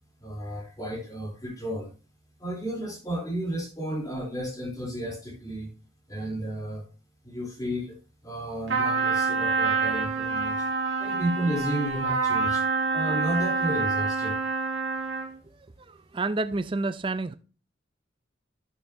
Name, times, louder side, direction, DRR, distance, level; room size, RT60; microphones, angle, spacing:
voice 1, 0.2-1.9 2.4-5.7 6.1-6.8 7.2-8.0 8.2-10.5 11.0-12.6 12.9-14.4, right 1 dB, 15° left, 3.1 m, -32 dB
Trumpet, 8.7-15.4, right 4 dB, 65° right, 2.5 m, -27 dB
voice 2, 15.9-17.3, right 3 dB, 25° right, 0.4 m, -29 dB
11.5 x 6.8 x 2.6 m
head